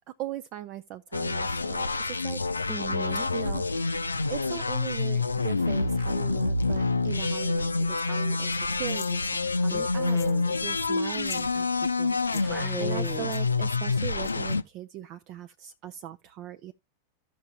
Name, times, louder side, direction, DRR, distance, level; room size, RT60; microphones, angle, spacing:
voice 1, 0.2-1.9 2.2-2.4 3.3-10.2 10.4-11.7 12.0-16.7, right 13 dB, 40° right, 0.5 m, -39 dB
sound 1, 1.1-14.6, left 3 dB, 80° left, 0.4 m, -27 dB
voice 2, 2.7-3.3 7.2-7.3 9.7-10.5 12.3-13.3, right 2 dB, 10° right, 0.9 m, -37 dB
sound 2, 8.9-9.2 10.0-10.4 10.7-10.8 11.1-11.5 12.2-12.5 13.3-13.4 14.2-14.6, left 12 dB, 45° left, 0.8 m, -44 dB
15.0 x 5.9 x 2.2 m
figure-of-eight pair, 90°, 0 cm